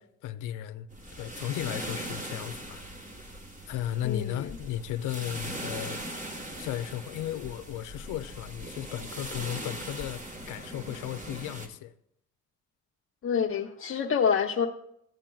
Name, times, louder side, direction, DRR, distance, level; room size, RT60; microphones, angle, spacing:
voice 1, 0.2-0.9 1.2-2.8 3.7-6.0 6.6-11.9, left 12 dB, 85° left, 0.5 m, -35 dB
sound 1, 0.9-11.7, right 1 dB, 25° right, 1.5 m, -40 dB
voice 2, 4.0-4.5 13.2-14.7, left 7 dB, 45° left, 0.7 m, -27 dB
15.0 x 8.8 x 2.3 m
cardioid pair, 90°, 30 cm